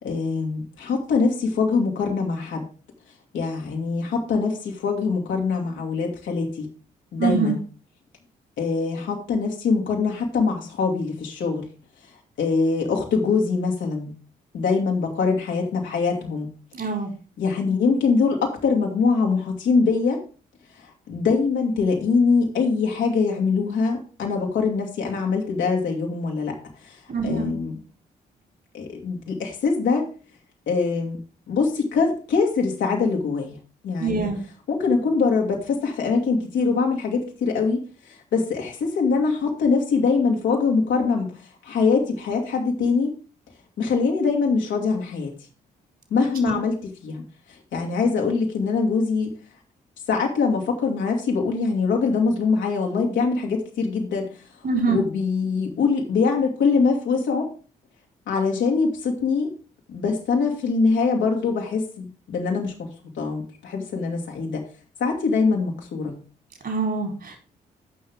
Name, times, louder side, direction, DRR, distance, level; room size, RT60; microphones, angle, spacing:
voice 1, 0.0-2.7 3.3-6.7 7.1-7.6 8.6-11.7 12.4-14.1 14.5-16.5 17.4-20.3 20.8-27.0 27.2-27.8 28.7-30.1 30.7-34.3 34.7-41.4 41.6-43.1 43.8-45.4 46.1-47.2 47.7-49.3 50.1-54.3 54.9-57.5 58.3-59.5 59.9-62.9 63.2-64.7 65.0-66.2, left 4 dB, 70° left, 0 dB, 2.3 m, -23 dB
voice 2, 7.2-7.5 16.7-17.1 27.1-27.5 34.0-34.4 54.6-55.0 66.6-67.4, right 4 dB, 50° right, 2 dB, 4.1 m, -24 dB
14.5 x 5.7 x 3.6 m, 0.36 s
hypercardioid pair, 45°, 20 cm